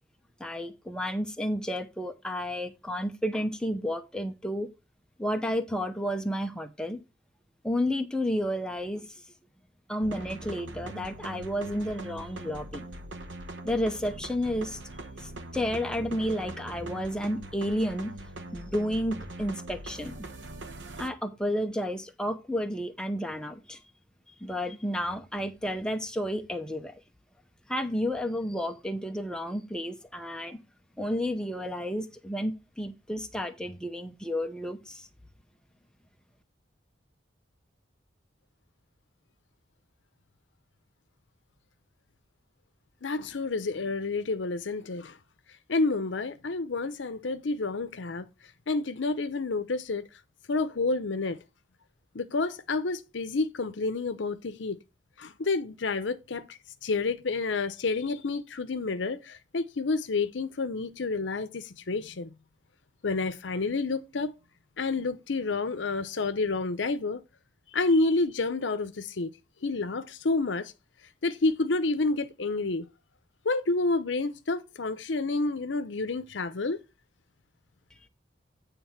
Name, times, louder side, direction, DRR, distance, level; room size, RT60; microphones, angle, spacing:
voice 1, 0.4-4.7 5.2-7.0 7.6-9.1 9.9-12.8 13.6-14.8 15.2-18.1 18.5-20.3 21.0-23.8 24.4-26.9 27.7-30.6 31.0-35.1, equal, 5° left, 0.8 m, -31 dB
sound 1, 10.0-21.1, right 2 dB, 80° right, 1.0 m, -42 dB
voice 2, 43.0-45.2 45.7-48.3 48.7-50.1 50.5-51.4 52.1-54.8 55.2-62.3 63.0-64.3 64.8-67.2 67.7-69.3 69.6-70.7 71.2-72.9 73.4-76.8, left 3 dB, 75° left, 0.7 m, -29 dB
9.2 x 3.5 x 5.7 m
head